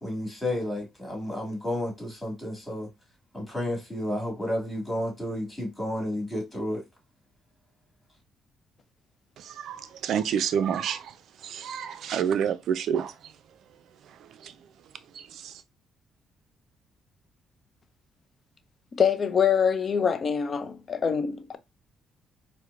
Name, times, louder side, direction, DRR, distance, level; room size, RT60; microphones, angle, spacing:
voice 1, 0.0-2.9 3.3-6.8, left 1 dB, 20° left, 1.9 m, -31 dB
voice 2, 9.4-11.1 11.4-13.1 14.4-14.5 15.4-15.5, right 8 dB, 70° right, 0.4 m, -28 dB
voice 3, 18.9-21.6, left 7 dB, 45° left, 0.5 m, -24 dB
4.4 x 2.1 x 2.4 m
cardioid pair, 80°, 0 cm